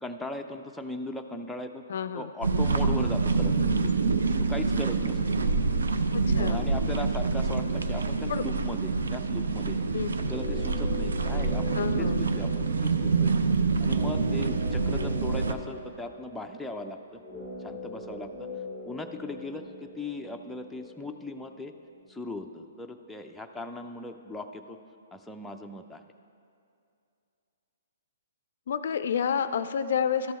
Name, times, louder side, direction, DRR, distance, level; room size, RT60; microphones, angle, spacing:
voice 1, 0.0-1.8 2.1-3.9 4.4-5.2 6.3-9.8 10.3-13.3 13.8-17.2 17.6-18.5 18.9-21.7 22.1-24.8 25.1-26.0, left 2 dB, 5° left, 3 dB, 0.4 m, -38 dB
voice 2, 1.9-2.3 6.1-6.7 8.3-8.4 9.9-10.2 11.7-12.3 28.7-30.3, left 7 dB, 65° left, 12 dB, 0.3 m, -29 dB
sound 1, 2.4-15.5, right 4 dB, 80° right, 0.5 m, -26 dB
sound 2, 10.2-22.3 22.6-22.7, left 2 dB, 20° right, 1.7 m, -42 dB
12.5 x 6.1 x 4.2 m, 2.5 s
hypercardioid pair, 130°, 0 cm